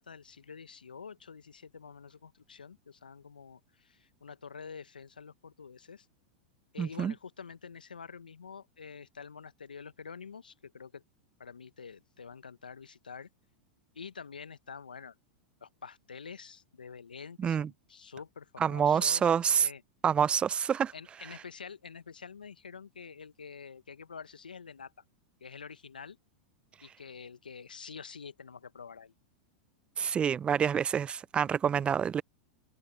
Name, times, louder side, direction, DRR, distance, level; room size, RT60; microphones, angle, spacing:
voice 1, 0.0-6.1 6.7-11.0 11.4-13.3 13.9-15.1 15.6-19.8 20.9-24.9 25.4-26.2 26.8-29.1, left 6 dB, 85° left, 1.0 m, -47 dB
voice 2, 6.8-7.1 17.4-17.7 18.6-19.7 20.0-20.9 30.0-32.2, right 8 dB, 25° right, 0.6 m, -27 dB
hypercardioid pair, 95°, 5 cm